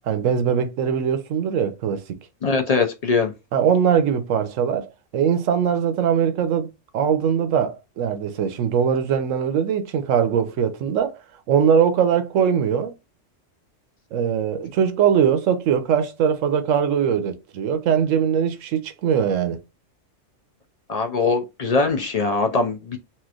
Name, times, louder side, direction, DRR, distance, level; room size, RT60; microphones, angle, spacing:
voice 1, 0.1-2.2 3.5-11.2 11.5-12.9 14.1-19.6, right 8 dB, 90° right, 1.0 m, -21 dB
voice 2, 2.4-3.3 20.9-23.0, left 4 dB, 60° left, 0.4 m, -21 dB
3.1 x 2.9 x 2.4 m
omnidirectional pair, 1.3 m